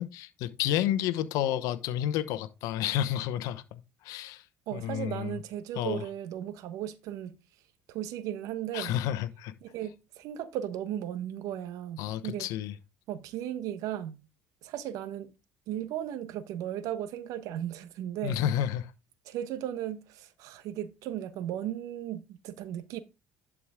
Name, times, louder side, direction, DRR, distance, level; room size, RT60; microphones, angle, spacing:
voice 1, 0.0-4.4 4.7-5.4 5.8-6.0 8.7-9.5 12.0-12.7 18.2-18.9, left 11 dB, 75° left, 0.9 m, -30 dB
voice 2, 4.7-7.4 7.9-8.9 9.6-12.5 13.1-14.2 14.6-15.3 15.7-18.4 19.3-23.0, right 11 dB, 75° right, 1.1 m, -36 dB
11.0 x 4.8 x 3.6 m
supercardioid pair, 75°, 6 cm